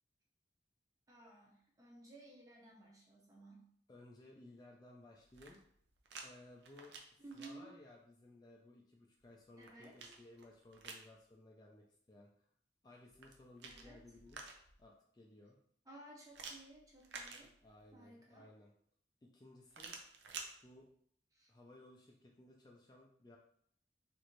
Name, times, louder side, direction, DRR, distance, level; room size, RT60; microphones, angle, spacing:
voice 1, 1.1-3.6 7.2-7.8 9.6-10.0 13.6-14.0 15.9-17.5 17.9-18.5 21.3-21.5, right 2 dB, 20° right, -2 dB, 0.6 m, -56 dB
voice 2, 3.9-5.6 6.2-12.4 12.8-15.6 17.4-18.7 19.2-20.0 20.6-20.9 21.5-23.4, left 2 dB, 25° left, -1 dB, 0.3 m, -59 dB
sound 1, 5.2-6.3 6.6-7.5 9.2-11.1 13.1-14.8 16.3-17.9 19.7-20.5, right 4 dB, 80° right, 0.5 m, -51 dB
3.0 x 2.5 x 3.0 m, 0.65 s
head